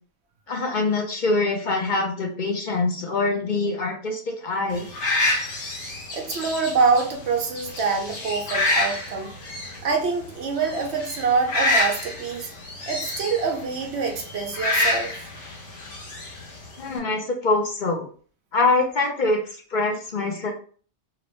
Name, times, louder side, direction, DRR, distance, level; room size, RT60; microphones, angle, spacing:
voice 1, 0.5-4.9 16.5-18.1 18.5-20.5, left 3 dB, 50° left, 2 dB, 0.7 m, -24 dB
sound 1, 4.7-17.0, left 2 dB, 70° left, 1.2 m, -28 dB
voice 2, 6.1-9.3 9.8-12.5 12.9-15.1, right 4 dB, 65° right, 3 dB, 0.9 m, -25 dB
2.9 x 2.5 x 3.1 m, 0.43 s
omnidirectional pair, 1.2 m